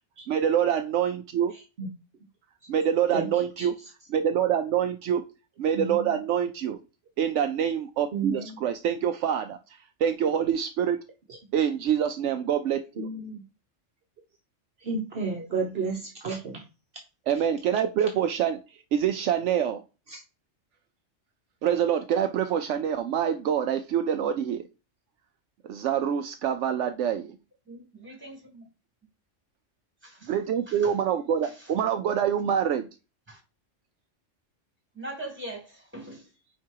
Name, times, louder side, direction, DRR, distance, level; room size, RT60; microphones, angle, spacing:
voice 1, 0.3-1.5 2.7-3.7 4.1-5.2 5.6-6.8 7.2-9.6 10.0-11.0 11.5-13.1 17.3-18.6 18.9-19.8 21.6-24.6 25.7-27.4 30.3-32.9, right 9 dB, 75° right, 0.9 m, -26 dB
voice 2, 1.5-1.9 3.1-3.9 5.7-6.2 8.1-8.6 11.3-11.4 13.0-13.4 14.8-16.6 17.4-17.5 20.1-20.2, right 4 dB, 55° right, 1.2 m, -33 dB
voice 3, 27.6-28.6 30.0-30.3 30.7-31.0 31.4-31.7 33.3-33.4 34.9-36.3, right 1 dB, 10° right, 3.5 m, -42 dB
4.7 x 4.6 x 4.5 m
omnidirectional pair, 1.3 m